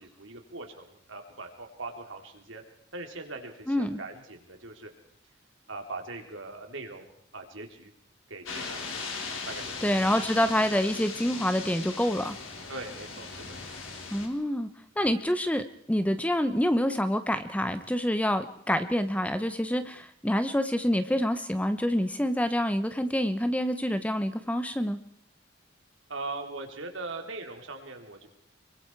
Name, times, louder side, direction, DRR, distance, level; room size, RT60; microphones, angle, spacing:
voice 1, 0.0-2.6 2.9-4.9 5.7-7.1 7.3-7.9 8.3-8.8 9.5-9.9 12.7-13.6 15.0-15.2 26.1-28.3, right 3 dB, 70° right, 4 dB, 3.4 m, -41 dB
voice 2, 3.7-4.0 9.8-12.4 14.1-14.7 15.0-25.0, equal, 5° left, 10 dB, 0.9 m, -27 dB
sound 1, 8.5-14.3, left 4 dB, 80° left, 3.9 m, -38 dB
25.0 x 23.5 x 4.7 m, 0.66 s
head